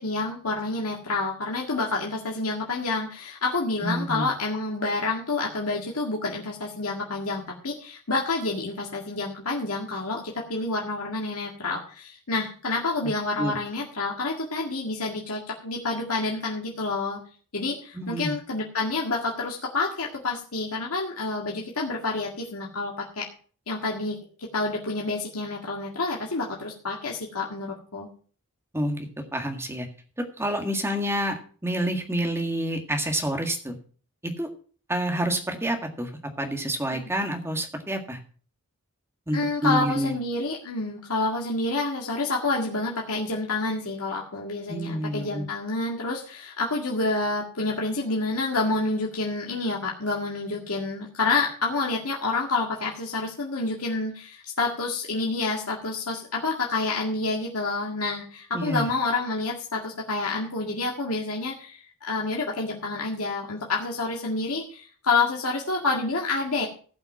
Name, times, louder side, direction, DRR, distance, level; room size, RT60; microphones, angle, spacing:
voice 1, 0.0-17.2 17.5-23.3 23.7-28.1 36.9-37.0 39.3-66.7, left 3 dB, 75° left, -2 dB, 2.0 m, -28 dB
voice 2, 3.8-4.3 13.4-13.6 17.9-18.3 28.7-29.1 29.3-29.9 30.2-33.8 34.2-34.5 34.9-36.1 36.4-38.2 39.3-40.1 44.7-45.5 58.5-58.9, equal, 10° right, 4 dB, 1.8 m, -28 dB
16.0 x 5.8 x 5.8 m, 0.44 s
head